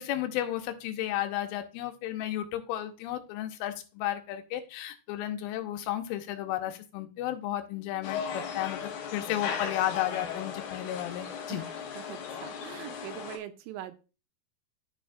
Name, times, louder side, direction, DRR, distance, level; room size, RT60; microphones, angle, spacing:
voice 1, 0.0-11.6, left 13 dB, 90° left, 3.3 m, -33 dB
sound 1, 8.0-13.4, left 7 dB, 65° left, 3.0 m, -37 dB
voice 2, 11.5-14.0, right 12 dB, 85° right, 2.7 m, -43 dB
14.0 x 5.1 x 2.4 m
omnidirectional pair, 5.5 m